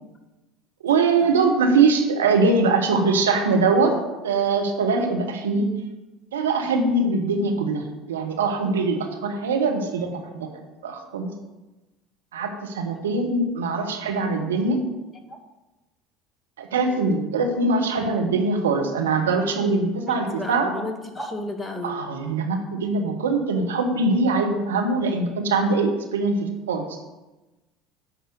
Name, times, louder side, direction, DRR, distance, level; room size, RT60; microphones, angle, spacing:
voice 1, 0.8-3.9 4.2-5.7 6.3-10.5 10.8-11.3 12.3-14.8 16.6-20.7 21.8-26.4 26.7-26.8, right 3 dB, 75° right, 3 dB, 1.2 m, -22 dB
voice 2, 16.9-17.2 19.8-22.0, left 1 dB, 10° left, 3 dB, 1.8 m, -34 dB
9.8 x 5.4 x 6.7 m, 1.1 s
figure-of-eight pair, 65°, 0 cm